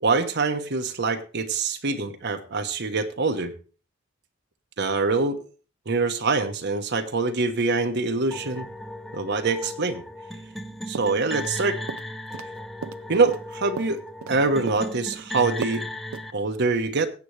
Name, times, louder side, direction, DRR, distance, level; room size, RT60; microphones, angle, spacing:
voice 1, 0.0-3.5 4.8-5.4 5.9-8.7 9.1-10.0 10.9-11.8 13.1-14.0 14.3-15.8 16.3-17.1, right 3 dB, 55° right, 6 dB, 1.0 m, -24 dB
sound 1, 8.3-16.3, left 1 dB, ahead, 0.7 m, -36 dB
sound 2, 10.9-11.6 11.9-12.5 12.8-14.4 14.7-15.2 15.6-15.8 16.1-16.3, right 5 dB, 85° right, 0.5 m, -36 dB
22.5 x 8.4 x 3.2 m, 0.37 s
head